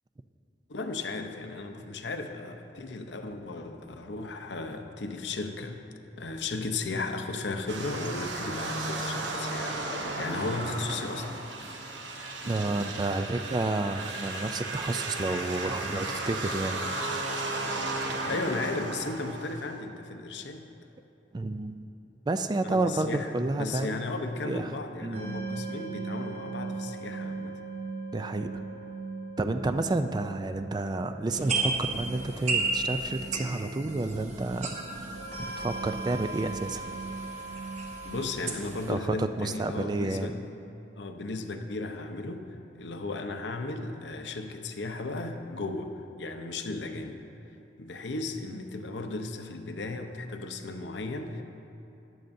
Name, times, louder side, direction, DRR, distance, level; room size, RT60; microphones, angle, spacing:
voice 1, 0.7-5.8 6.2-11.4 17.9-20.7 22.6-27.6 37.9-40.4 41.0-47.2 47.8-51.4, left 3 dB, 75° left, 6 dB, 0.7 m, -35 dB
sound 1, 7.7-19.8, right 2 dB, 85° right, 1.0 m, -34 dB
voice 2, 12.5-16.8 21.3-21.8 22.3-24.0 24.4-25.3 28.1-28.5 29.4-36.8 38.9-40.3, right 2 dB, 25° right, 8 dB, 0.3 m, -30 dB
sound 2, 25.1-38.2, right 3 dB, 70° right, 2.6 m, -39 dB
sound 3, 31.3-38.9, right 3 dB, 40° right, 1.1 m, -34 dB
14.0 x 11.0 x 2.6 m, 2.8 s
head